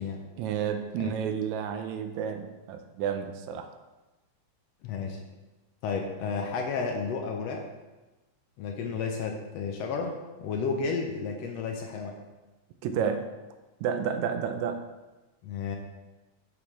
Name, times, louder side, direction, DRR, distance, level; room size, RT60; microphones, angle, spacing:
voice 1, 0.4-3.7 12.8-13.2 13.8-14.8, right 7 dB, 80° right, 7 dB, 1.9 m, -31 dB
voice 2, 4.8-5.2 5.8-7.6 8.6-12.1 15.4-15.8, left 5 dB, 70° left, 3 dB, 1.7 m, -32 dB
8.6 x 6.7 x 3.1 m, 1.1 s
omnidirectional pair, 3.3 m